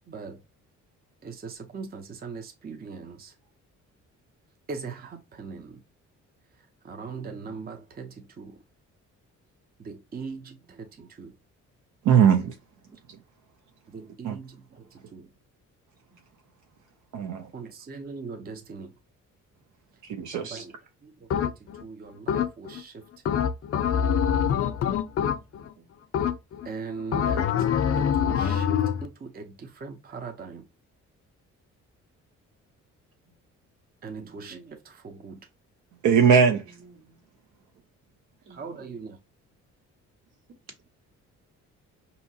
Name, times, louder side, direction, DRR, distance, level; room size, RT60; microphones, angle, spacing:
voice 1, 0.1-0.4 1.2-3.4 4.7-5.8 6.5-8.6 9.8-11.4 12.9-13.0 13.9-15.3 17.5-18.9 20.3-23.0 26.6-27.7 27.9-30.7 34.0-35.4 38.5-39.2, right 4 dB, 30° right, 0.6 m, -40 dB
voice 2, 10.4-10.7 16.1-16.2 21.2-21.3 25.7-25.9 33.2-33.4 34.1-34.5 36.6-37.2 38.4-39.0 40.5-40.6, right 3 dB, 55° right, 1.6 m, -56 dB
voice 3, 12.0-12.6 14.2-14.4 17.1-17.5 20.0-20.6 36.0-36.8, right 7 dB, 75° right, 0.6 m, -20 dB
sound 1, 21.3-21.8 22.3-22.8 23.3-25.7 26.1-26.7 27.1-29.1, left 8 dB, 50° left, 0.5 m, -25 dB
5.5 x 2.8 x 2.7 m
cardioid pair, 90°, 30 cm